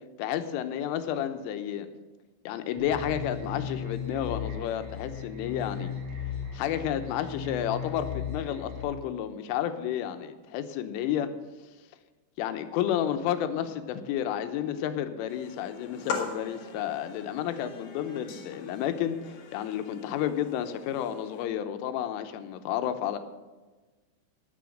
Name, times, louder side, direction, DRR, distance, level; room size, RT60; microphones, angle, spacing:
voice 1, 0.2-1.9 2.5-5.9 6.5-11.3 12.4-23.2, left 10 dB, 80° left, 9 dB, 3.4 m, -31 dB
sound 1, 2.8-8.8, left 7 dB, 55° right, 5.9 m, -36 dB
sound 2, 15.3-21.5, left 5 dB, 65° left, 2.0 m, -41 dB
18.5 x 6.9 x 6.4 m, 1.3 s
omnidirectional pair, 5.7 m